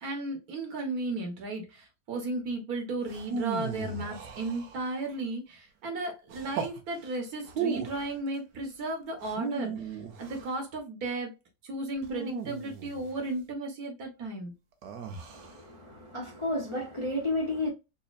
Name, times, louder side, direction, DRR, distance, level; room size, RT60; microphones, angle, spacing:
voice 1, 0.0-11.3 11.6-14.5, right 2 dB, 65° right, 1.5 m, -35 dB
sound 1, 3.1-5.1 6.3-6.8 7.4-8.1 9.2-10.5 12.0-13.2 14.8-15.6, right 5 dB, 85° right, 1.4 m, -36 dB
voice 2, 15.3-17.7, left 1 dB, 25° left, 0.7 m, -32 dB
4.1 x 2.7 x 2.4 m
omnidirectional pair, 1.8 m